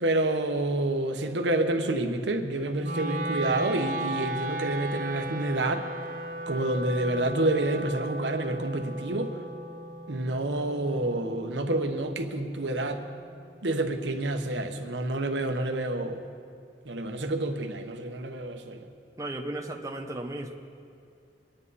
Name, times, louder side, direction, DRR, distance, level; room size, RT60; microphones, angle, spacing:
voice 1, 0.0-5.8 6.5-9.3 10.1-13.0 13.6-16.2 16.9-18.9, right 2 dB, 90° right, 5 dB, 1.1 m, -28 dB
Wind instrument woodwind instrument, 2.8-13.0, right 1 dB, 50° right, 0.8 m, -36 dB
voice 2, 19.2-20.5, right 1 dB, 20° right, 2 dB, 0.9 m, -35 dB
23.5 x 10.0 x 4.2 m, 2.4 s
head